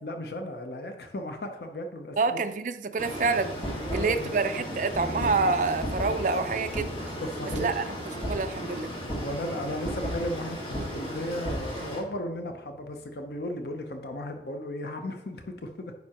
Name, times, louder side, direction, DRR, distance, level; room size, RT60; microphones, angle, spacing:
voice 1, 0.0-2.4 3.8-4.4 7.2-7.7 9.1-15.9, left 1 dB, 65° left, 5 dB, 0.7 m, -35 dB
voice 2, 2.2-3.6 3.9-6.9 7.6-7.8 8.3-8.9, right 4 dB, 45° right, 9 dB, 0.4 m, -27 dB
sound 1, 3.0-12.0, equal, 30° left, 1.8 m, -34 dB
sound 2, 4.9-14.4, left 2 dB, 5° right, 2.0 m, -46 dB
9.3 x 5.4 x 2.9 m, 0.91 s
head